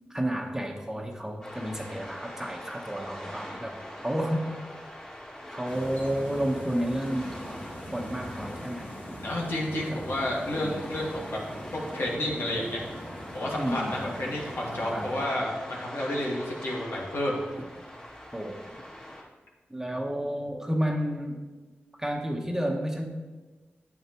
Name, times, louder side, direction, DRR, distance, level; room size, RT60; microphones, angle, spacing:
voice 1, 0.1-3.8 4.0-4.5 5.5-7.3 7.9-9.0 9.9-10.0 10.6-10.8 13.5-14.0 14.7-15.4 18.3-18.6 19.7-21.4 22.0-23.0, equal, 10° right, 1 dB, 1.2 m, -31 dB
sound 1, 1.4-19.2, equal, 20° left, 2.3 m, -43 dB
sound 2, 5.7-15.3, equal, 55° left, 2.5 m, -42 dB
voice 2, 9.2-11.4 11.7-12.8 13.3-17.4, left 1 dB, 75° left, -4 dB, 2.1 m, -31 dB
9.0 x 8.0 x 3.1 m, 1.3 s
cardioid pair, 60°, 4 cm